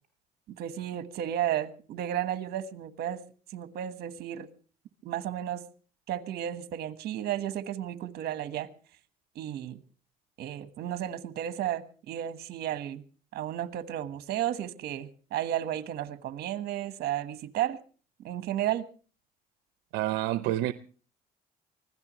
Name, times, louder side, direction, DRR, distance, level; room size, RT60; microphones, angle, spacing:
voice 1, 0.6-3.2 3.5-4.5 5.0-5.7 6.1-8.7 9.3-9.8 10.4-13.0 13.3-17.8 18.2-18.9, right 11 dB, 70° right, 1.4 m, -33 dB
voice 2, 19.9-20.7, right 15 dB, 90° right, 0.7 m, -28 dB
24.5 x 16.5 x 3.1 m
cardioid pair, 110°, 17 cm